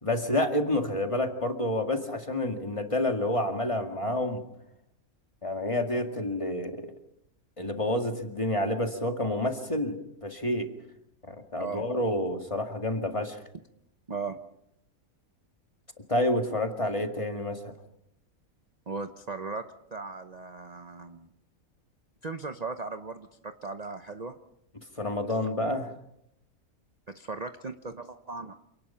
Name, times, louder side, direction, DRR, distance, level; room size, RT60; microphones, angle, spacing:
voice 1, 0.0-4.4 5.4-6.9 7.6-10.7 11.2-13.4 16.1-17.7 25.0-25.9, left 1 dB, 20° left, 4 dB, 2.0 m, -29 dB
voice 2, 14.1-14.4 18.9-19.7 19.9-21.3 22.2-24.3 27.1-28.5, right 4 dB, 35° right, 8 dB, 0.9 m, -37 dB
28.0 x 18.5 x 5.7 m, 0.79 s
omnidirectional pair, 1.5 m